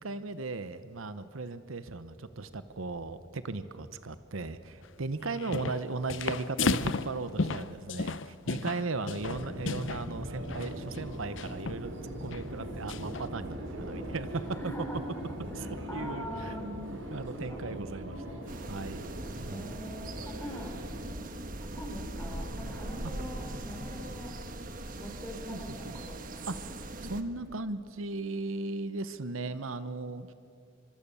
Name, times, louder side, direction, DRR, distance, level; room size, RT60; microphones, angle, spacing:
voice 1, 0.0-11.9 12.2-14.7 15.5-15.7 15.9-18.2 18.7-19.1 19.4-19.8 25.5-25.6 25.8-26.0 26.5-30.3, right 3 dB, 80° right, 12 dB, 0.9 m, -37 dB
sound 1, 5.3-5.8 6.1-10.1 10.4-10.7 11.4-11.8 12.3-12.4 12.9-13.2, left 4 dB, 65° left, 0.7 m, -33 dB
Subway metro underground, 9.2-21.1, right 1 dB, 60° right, 3.4 m, -41 dB
voice 2, 14.5-15.2 15.5-16.8 17.5-18.5 19.5-20.8 21.7-24.3 25.0-26.5, equal, 10° left, 0 dB, 4.4 m, -43 dB
sound 2, 18.5-27.2, right 1 dB, 40° right, 1.4 m, -40 dB
25.0 x 24.0 x 7.0 m, 2.4 s
head